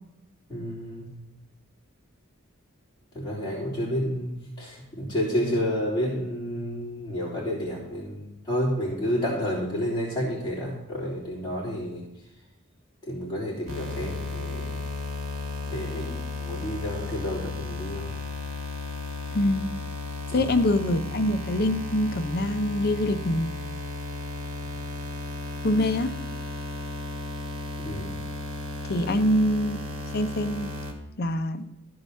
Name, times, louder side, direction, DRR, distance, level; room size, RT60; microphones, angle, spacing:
voice 1, 0.5-1.1 3.1-12.1 13.0-14.8 15.7-18.1 20.3-20.4 27.8-28.1, equal, 20° left, -12 dB, 3.3 m, -30 dB
sound 1, 13.7-30.9, left 3 dB, 65° right, 1.9 m, -34 dB
voice 2, 19.3-19.6 20.3-23.5 25.6-26.2 28.9-29.8 30.1-30.7 31.2-31.7, left 1 dB, 50° left, 7 dB, 0.7 m, -24 dB
14.0 x 4.8 x 5.5 m, 0.89 s
head